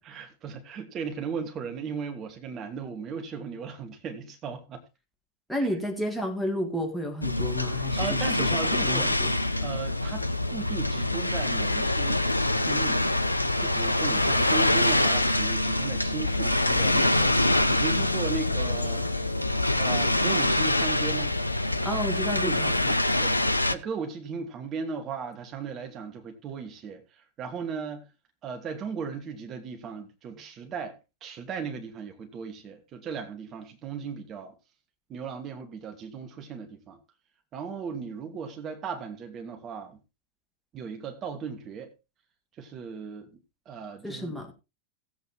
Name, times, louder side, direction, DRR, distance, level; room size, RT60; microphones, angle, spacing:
voice 1, 0.1-4.8 5.6-5.7 8.0-12.3 12.5-13.0 13.6-19.3 19.8-21.4 22.4-28.1 28.4-31.0 31.2-34.5 35.1-37.0 37.5-40.0 40.7-41.9 42.6-43.3 43.7-44.3, right 6 dB, 30° right, 1.7 m, -37 dB
voice 2, 5.5-8.5 8.8-9.3 21.8-22.7 44.0-44.5, left 1 dB, ahead, 1.8 m, -31 dB
sound 1, 7.2-23.7, left 1 dB, 85° left, 0.6 m, -25 dB
17.0 x 8.2 x 3.0 m
figure-of-eight pair, 90°, 0 cm